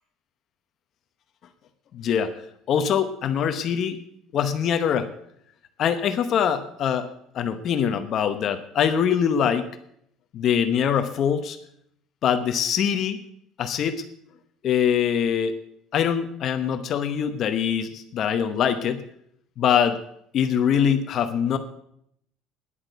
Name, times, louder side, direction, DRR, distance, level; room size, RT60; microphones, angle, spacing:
voice 1, 1.9-2.3 2.7-4.0 4.3-5.1 5.8-9.7 10.3-11.6 12.2-13.2 13.6-14.0 14.6-15.6 15.9-19.0 19.6-20.0 20.3-21.6, left 8 dB, 40° left, 9 dB, 0.8 m, -23 dB
10.0 x 8.7 x 7.9 m, 0.70 s
cardioid pair, 155°, 0 cm